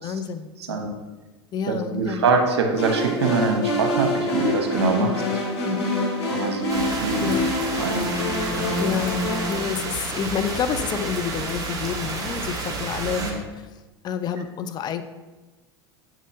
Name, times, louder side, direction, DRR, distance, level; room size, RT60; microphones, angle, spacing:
voice 1, 0.0-0.8 1.5-2.2 5.0-6.0 7.2-7.5 8.8-13.4 14.0-15.0, left 7 dB, 30° left, 10 dB, 0.4 m, -29 dB
voice 2, 0.6-0.9 1.7-5.2 6.3-7.3 7.8-8.1 8.5-8.8 13.1-13.4, right 4 dB, 75° right, 3 dB, 1.0 m, -24 dB
sound 1, 2.7-9.6, left 1 dB, 70° left, 1.9 m, -26 dB
sound 2, 6.7-13.3, right 3 dB, 25° right, 1.3 m, -31 dB
7.3 x 5.2 x 2.7 m, 1.2 s
hypercardioid pair, 85°, 14 cm